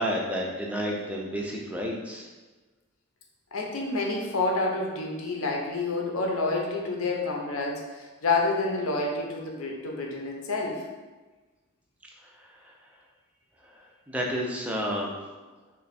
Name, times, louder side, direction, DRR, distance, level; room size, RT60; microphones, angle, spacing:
voice 1, 0.0-2.3 12.2-12.7 13.6-15.2, equal, 5° right, -2 dB, 0.4 m, -31 dB
voice 2, 3.5-10.8, left 3 dB, 75° left, 0 dB, 0.6 m, -28 dB
3.2 x 2.3 x 4.0 m, 1.3 s
head